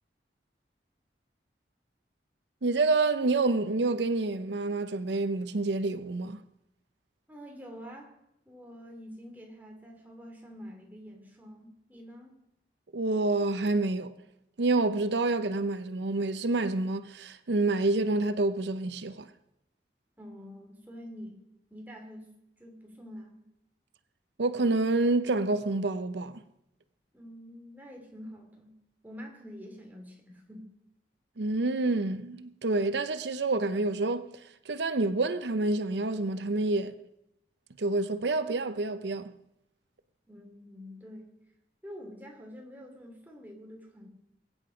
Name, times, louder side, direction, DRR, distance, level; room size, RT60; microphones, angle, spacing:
voice 1, 2.6-6.4 12.9-14.1 14.6-19.3 24.4-26.3 31.4-34.3 34.7-36.9 37.8-39.3, right 2 dB, 85° right, 0.7 m, -28 dB
voice 2, 7.3-8.1 8.5-12.3 20.2-21.4 21.7-22.3 22.6-23.4 27.1-28.7 29.0-30.7 40.3-41.3 41.8-44.1, equal, 10° right, 2.7 m, -46 dB
22.0 x 8.7 x 5.1 m
head